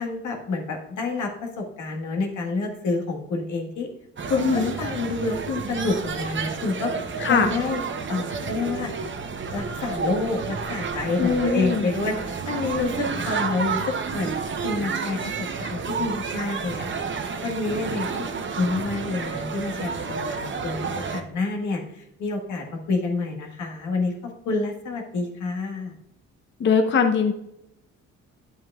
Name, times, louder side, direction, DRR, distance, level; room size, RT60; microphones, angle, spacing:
voice 1, 0.0-3.9 4.3-7.8 8.1-8.9 9.5-18.3 18.6-19.9 20.3-25.9, left 3 dB, 80° left, 2 dB, 1.6 m, -28 dB
sound 1, 4.2-21.2, right 5 dB, 40° right, 0.8 m, -30 dB
voice 2, 4.3-4.7 7.2-7.5 11.2-11.9 26.6-27.3, left 5 dB, 40° left, 6 dB, 0.7 m, -21 dB
9.3 x 7.8 x 2.4 m, 0.80 s
cardioid pair, 90°, 30 cm